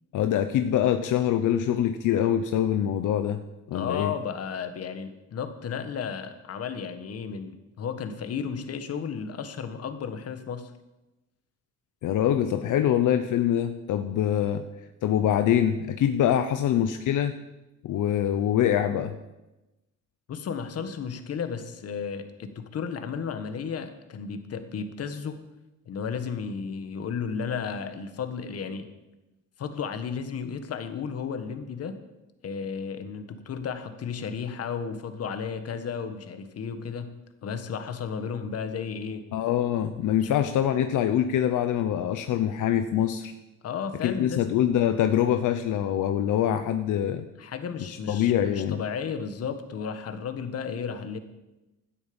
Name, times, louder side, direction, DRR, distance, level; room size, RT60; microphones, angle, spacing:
voice 1, 0.1-3.4 3.7-4.1 12.0-14.6 15.0-17.3 17.8-19.1 39.3-43.3 44.0-47.2 47.9-48.8, left 10 dB, 75° left, 8 dB, 0.9 m, -24 dB
voice 2, 3.7-10.7 20.3-25.4 25.8-28.9 29.6-32.0 32.4-37.1 37.4-39.2 40.2-40.3 43.6-44.4 47.4-51.2, left 6 dB, 50° left, 9 dB, 1.6 m, -33 dB
17.0 x 12.5 x 5.3 m, 1.0 s
cardioid pair, 150°, 31 cm